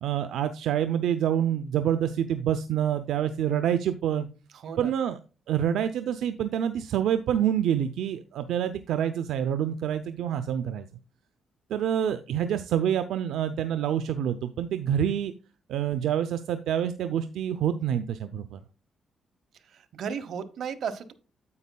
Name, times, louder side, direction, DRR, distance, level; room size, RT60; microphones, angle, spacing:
voice 1, 0.0-4.3 4.8-5.2 5.5-10.9 11.7-15.3 15.7-18.6, right 9 dB, 85° right, 10 dB, 0.5 m, -27 dB
voice 2, 4.5-4.9 19.7-21.1, right 7 dB, 65° right, 10 dB, 1.0 m, -34 dB
9.6 x 8.2 x 2.2 m, 0.34 s
cardioid pair, 115°, 0 cm